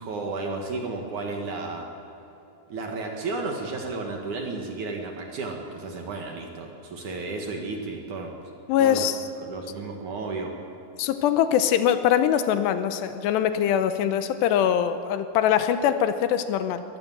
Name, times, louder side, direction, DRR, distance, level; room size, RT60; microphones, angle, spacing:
voice 1, 0.0-1.9 2.7-8.4 8.8-9.1 9.4-10.5, right 3 dB, 55° right, 2 dB, 2.6 m, -33 dB
voice 2, 8.7-9.2 11.0-16.8, left 9 dB, 85° left, 10 dB, 2.9 m, -22 dB
22.0 x 15.5 x 7.6 m, 3.0 s
omnidirectional pair, 5.0 m